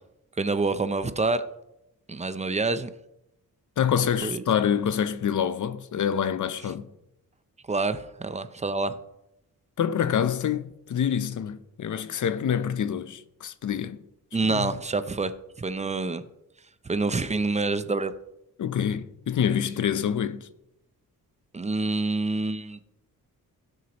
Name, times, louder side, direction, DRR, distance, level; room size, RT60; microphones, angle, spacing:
voice 1, 0.4-1.4 2.1-2.9 4.2-4.4 7.7-9.0 14.3-15.3 15.6-16.2 16.8-18.1 21.5-22.8, right 3 dB, 20° right, 0.5 m, -27 dB
voice 2, 3.8-6.9 9.8-14.0 14.4-14.7 18.6-20.5, left 8 dB, 55° left, 0.7 m, -26 dB
16.5 x 6.4 x 2.9 m
wide cardioid pair, 120°, 35 cm